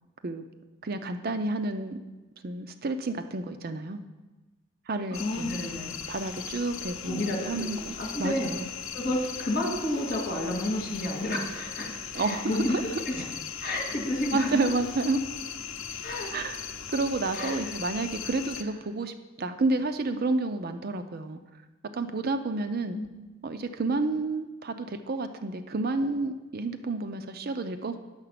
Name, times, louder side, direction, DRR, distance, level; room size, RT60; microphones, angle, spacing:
voice 1, 0.8-2.0 2.4-4.0 4.9-5.6 6.1-8.7 12.1-13.0 14.3-15.2 16.3-21.4 21.9-23.0 23.4-28.0, right 3 dB, 50° right, 9 dB, 0.5 m, -30 dB
sound 1, 5.1-18.6, left 7 dB, 85° left, 0.7 m, -39 dB
voice 2, 5.2-5.9 7.0-8.5 8.9-12.8 13.1-13.2 13.6-14.7 16.0-16.3 17.3-17.6 22.9-23.1, left 1 dB, 45° left, -1 dB, 2.3 m, -31 dB
9.6 x 6.8 x 5.8 m, 1.1 s
head